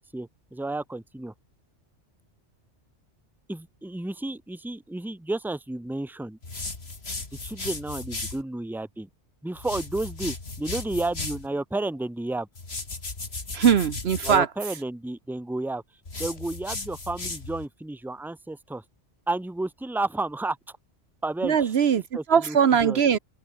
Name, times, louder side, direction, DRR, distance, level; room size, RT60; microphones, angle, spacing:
voice 1, 0.1-1.3 3.5-6.4 7.4-9.1 9.4-12.5 14.2-15.8 16.2-18.8 19.3-20.8 21.2-21.7 22.1-23.0, right 2 dB, ahead, 1.1 m, -32 dB
sound 1, 6.4-8.4 9.6-11.5 12.6-14.4 16.1-17.7, left 3 dB, 60° left, 3.2 m, -35 dB
voice 2, 13.5-14.5 21.4-22.0 22.3-23.2, right 7 dB, 65° right, 1.1 m, -20 dB
open air
omnidirectional pair, 1.2 m